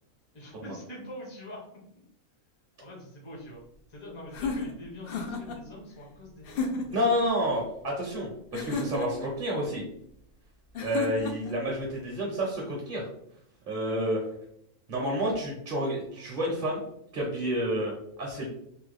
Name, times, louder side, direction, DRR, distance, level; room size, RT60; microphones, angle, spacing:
voice 1, 0.3-1.7 2.8-3.6 3.9-7.1, left 1 dB, 25° left, -3 dB, 0.6 m, -44 dB
sound 1, 4.3-5.6 6.4-7.1 8.5-9.3 10.7-11.6, left 3 dB, 75° left, 0.5 m, -32 dB
voice 2, 6.9-9.8 10.8-13.1 13.7-14.2 14.9-16.8 17.1-18.5, equal, 50° right, -2 dB, 0.7 m, -29 dB
3.2 x 2.2 x 3.2 m, 0.72 s
omnidirectional pair, 1.5 m